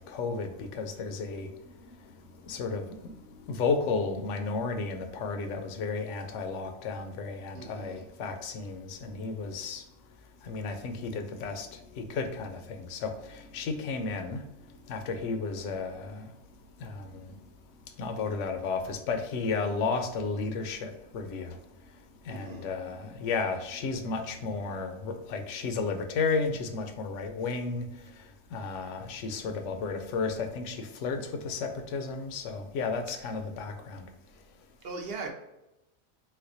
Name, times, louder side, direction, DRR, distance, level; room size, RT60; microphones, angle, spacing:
voice 1, 0.0-1.5 2.5-2.8 3.5-9.8 10.5-11.7 12.0-13.1 13.5-14.4 14.9-16.2 16.8-17.0 18.0-21.5 22.3-27.9 28.5-31.2 31.4-34.1, left 4 dB, 70° left, 6 dB, 0.8 m, -33 dB
voice 2, 7.5-8.0 22.3-22.7 34.8-35.3, right 4 dB, 55° right, 1 dB, 0.8 m, -39 dB
4.1 x 2.2 x 2.6 m, 0.91 s
omnidirectional pair, 1.4 m